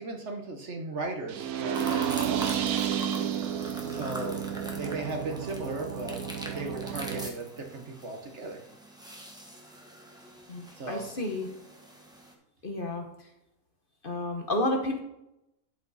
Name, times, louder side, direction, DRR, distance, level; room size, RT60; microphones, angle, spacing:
voice 1, 0.0-2.7 3.9-4.5 4.7-6.2 6.5-8.6 10.8-11.1, right 2 dB, 55° right, 3 dB, 1.3 m, -36 dB
sound 1, 1.3-7.3, right 9 dB, 90° right, 1.2 m, -31 dB
sound 2, 1.7-12.3, equal, 5° right, 1.2 m, -43 dB
voice 2, 10.5-11.5 12.6-13.0 14.0-15.0, left 1 dB, 40° left, 3 dB, 1.1 m, -31 dB
12.0 x 5.1 x 4.1 m, 0.87 s
omnidirectional pair, 1.5 m